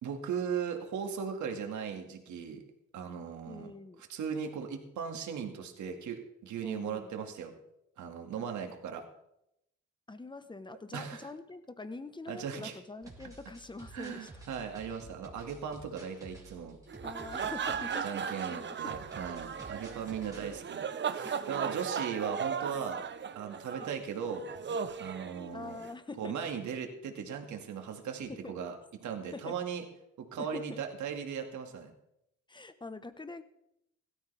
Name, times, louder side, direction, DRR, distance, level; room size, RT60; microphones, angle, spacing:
voice 1, 0.0-2.6 2.9-3.7 4.1-7.5 8.0-9.1 10.9-11.3 12.3-12.8 13.9-16.8 18.0-23.0 23.4-24.5 25.0-25.8 26.2-28.8 29.0-29.8 30.2-31.9, right 7 dB, 75° right, 4 dB, 2.0 m, -38 dB
voice 2, 3.4-4.0 6.6-7.1 8.4-8.5 10.1-14.4 17.0-18.9 21.2-21.8 23.8-23.9 25.5-26.3 28.3-28.5 29.3-29.5 30.4-30.8 32.5-33.4, left 3 dB, 15° left, 11 dB, 1.1 m, -45 dB
sound 1, 13.0-20.5, right 2 dB, 10° right, 2.8 m, -52 dB
sound 2, 16.9-25.9, right 6 dB, 40° right, 0.8 m, -37 dB
16.5 x 13.0 x 3.4 m, 0.82 s
cardioid pair, 90°, 30 cm